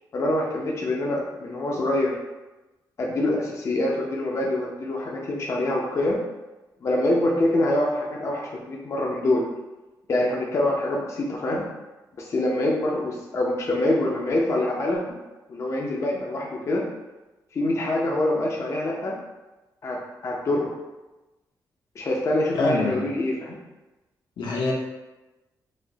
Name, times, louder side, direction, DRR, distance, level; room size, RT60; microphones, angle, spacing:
voice 1, 0.1-2.2 3.0-6.2 6.8-9.4 10.1-11.6 12.2-15.0 15.5-16.8 17.5-19.2 19.8-20.7 22.0-23.6, left 1 dB, 40° left, -2 dB, 0.5 m, -25 dB
voice 2, 22.5-23.0 24.4-24.7, left 3 dB, 80° left, -2 dB, 0.8 m, -25 dB
4.8 x 2.1 x 2.7 m, 1.1 s
cardioid pair, 125°, 8 cm